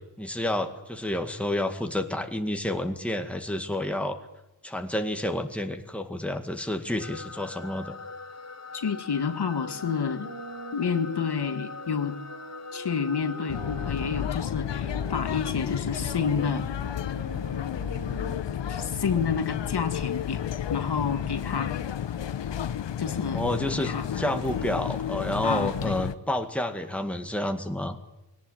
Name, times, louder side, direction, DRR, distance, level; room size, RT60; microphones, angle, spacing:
voice 1, 0.2-4.2 4.6-8.0 23.3-28.0, left 1 dB, 5° left, 5 dB, 2.0 m, -29 dB
sound 1, 7.0-14.3, left 4 dB, 40° left, 0.9 m, -42 dB
voice 2, 8.7-10.3 10.7-12.2 12.7-16.6 18.7-20.4 20.7-21.7 23.0-23.4 23.8-24.1 25.4-25.9, left 6 dB, 65° left, 8 dB, 1.8 m, -29 dB
sound 2, 9.6-14.2 14.7-19.7, right 4 dB, 65° right, 3.5 m, -45 dB
sound 3, 13.5-26.1, left 9 dB, 85° left, 0.9 m, -32 dB
22.0 x 18.5 x 9.0 m, 0.91 s
wide cardioid pair, 140°, 43 cm